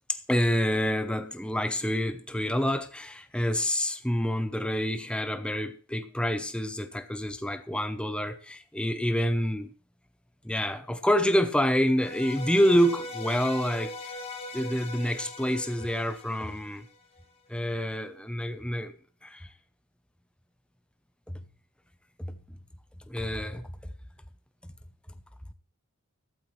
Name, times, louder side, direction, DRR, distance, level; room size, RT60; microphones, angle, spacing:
voice 1, 0.1-9.7 10.4-14.2 14.5-16.8 17.5-19.0 19.2-19.5 21.3-21.4 22.2-22.4 23.1-23.7, equal, 5° left, 0.7 m, -27 dB
sound 1, 12.0-17.2, left 2 dB, 25° left, 1.9 m, -40 dB
14.0 x 12.5 x 3.2 m
head